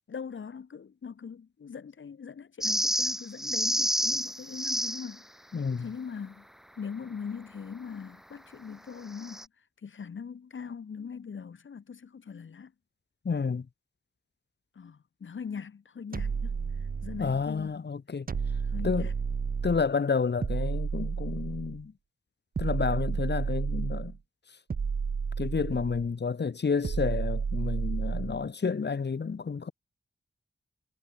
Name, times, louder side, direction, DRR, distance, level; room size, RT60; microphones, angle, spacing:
voice 1, 0.1-5.3 5.8-6.5 6.8-9.5 9.8-12.7 14.7-16.6 17.0-17.7 18.6-19.1, left 6 dB, 80° left, 3.0 m, -41 dB
sound 1, 2.6-5.1 9.2-9.4, equal, ahead, 1.9 m, -29 dB
voice 2, 5.5-5.8 13.2-13.7 17.2-18.3 18.8-19.1 19.6-21.9 22.6-24.1 25.4-29.7, left 5 dB, 60° left, 2.9 m, -30 dB
sound 2, 16.1-17.4 18.3-19.9 20.4-21.8 22.5-24.2 24.7-26.1 26.8-28.4, right 5 dB, 45° right, 0.8 m, -31 dB
wide cardioid pair, 110°, 20 cm